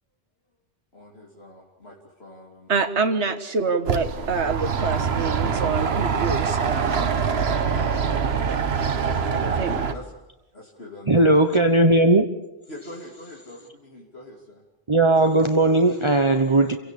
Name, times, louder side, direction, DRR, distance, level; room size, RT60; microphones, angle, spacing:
voice 1, 0.9-2.8 9.1-10.1 10.5-11.3 12.7-14.6, left 1 dB, 65° left, -2 dB, 3.4 m, -42 dB
voice 2, 2.7-7.1 9.6-9.8, right 4 dB, 90° right, 7 dB, 1.7 m, -26 dB
sound 1, 3.9-9.9, right 6 dB, 65° right, 1.4 m, -24 dB
voice 3, 11.1-12.3 14.9-16.8, right 2 dB, 25° right, 6 dB, 1.1 m, -18 dB
28.0 x 17.0 x 8.4 m, 0.97 s
omnidirectional pair, 1.1 m